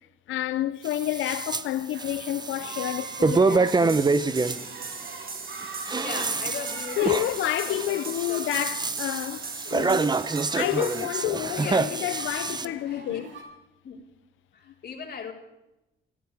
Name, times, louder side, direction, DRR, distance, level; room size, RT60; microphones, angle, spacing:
voice 1, 0.3-4.1 7.0-10.1 10.5-13.3, left 13 dB, 75° left, 0.6 m, -29 dB
sound 1, 0.8-1.6 2.0-4.6 5.6-12.7, right 4 dB, 20° right, 0.8 m, -27 dB
sound 2, 1.9-13.4, right 4 dB, 70° right, 5.7 m, -43 dB
sound 3, 3.7-11.0, right 4 dB, 45° right, 2.6 m, -39 dB
voice 2, 6.0-8.5 11.5-12.1 12.5-13.2 13.8-14.0 14.5-15.3, left 6 dB, 55° left, 4.3 m, -38 dB
28.0 x 14.0 x 3.5 m
cardioid pair, 90°, 20 cm